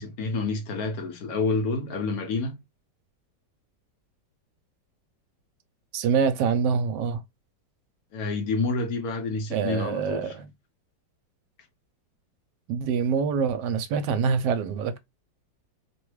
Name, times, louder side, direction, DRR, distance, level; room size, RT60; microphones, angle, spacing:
voice 1, 0.0-2.6 8.1-10.3, left 3 dB, 65° left, 1.1 m, -28 dB
voice 2, 5.9-7.2 9.5-10.5 12.7-15.0, right 6 dB, 75° right, 1.1 m, -25 dB
3.1 x 2.2 x 3.1 m
omnidirectional pair, 2.0 m